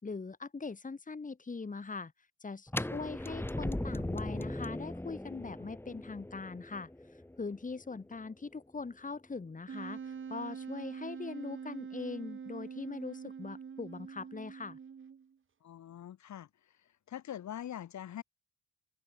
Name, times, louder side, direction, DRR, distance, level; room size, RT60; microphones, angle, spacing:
voice 1, 0.0-2.1 2.4-6.9 7.4-14.8, left 4 dB, 25° left, 4.4 m, -41 dB
sound 1, 2.7-8.5, left 1 dB, 5° left, 4.0 m, -39 dB
Wind instrument woodwind instrument, 9.7-15.3, right 6 dB, 40° right, 2.6 m, -44 dB
voice 2, 15.6-16.5 17.1-18.2, left 10 dB, 65° left, 5.9 m, -43 dB
cardioid pair, 90°, 30 cm